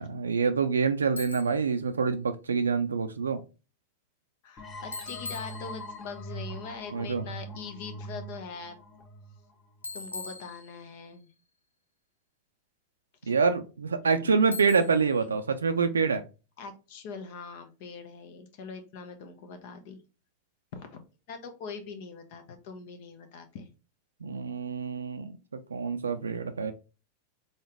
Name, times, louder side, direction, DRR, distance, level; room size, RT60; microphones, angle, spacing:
voice 1, 0.0-3.4 6.9-7.3 13.3-16.2 24.2-26.7, right 5 dB, 70° right, 0.5 m, -26 dB
Bicycle, 1.2-1.7 4.9-6.1 9.8-11.1 14.5-15.2, left 3 dB, 85° left, 0.5 m, -41 dB
voice 2, 4.4-8.8 9.9-11.3 13.2-13.3 14.2-14.3 14.7-14.9 15.2-15.3 16.6-20.0 20.7-21.0 21.3-23.7, left 5 dB, 50° left, 0.9 m, -42 dB
sound 1, 4.6-10.0, equal, 25° left, 1.0 m, -42 dB
4.0 x 3.8 x 3.4 m
figure-of-eight pair, 90°, 0 cm